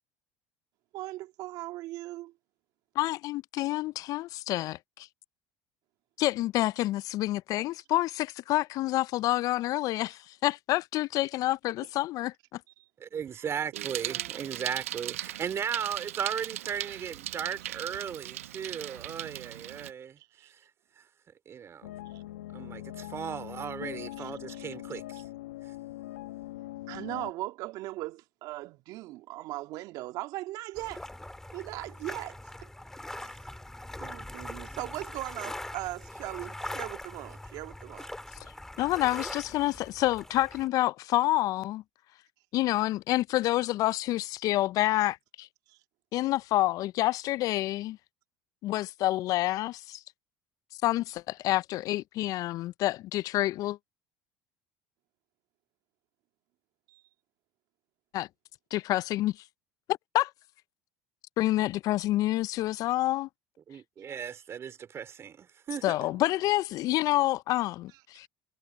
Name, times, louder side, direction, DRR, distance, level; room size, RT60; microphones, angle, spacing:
voice 1, 0.9-2.3 13.4-13.5 13.7-14.6 17.6-17.8 20.4-20.5 22.1-22.2 24.2-24.4 26.9-31.1 31.5-32.7 33.2-33.4 34.0-38.1 45.7-45.8 56.9-57.0, right 18 dB, 60° right, 2.0 m, -39 dB
voice 2, 3.0-5.1 6.2-12.6 38.4-38.5 38.8-41.8 42.5-45.5 46.1-48.0 48.6-50.0 50.8-53.8 58.1-58.3 58.7-59.4 59.9-60.3 61.4-63.3 65.8-68.3, left 16 dB, 55° left, 0.4 m, -28 dB
voice 3, 13.0-20.2 21.0-21.1 21.5-21.9 22.5-25.2 63.7-65.9, right 8 dB, 35° right, 3.9 m, -36 dB
Bicycle, 13.7-19.9, right 13 dB, 85° right, 0.8 m, -38 dB
sound 1, 21.8-27.3, left 16 dB, 85° left, 1.0 m, -42 dB
sound 2, 30.8-40.7, left 1 dB, 5° left, 2.4 m, -42 dB
hypercardioid pair, 80°, 7 cm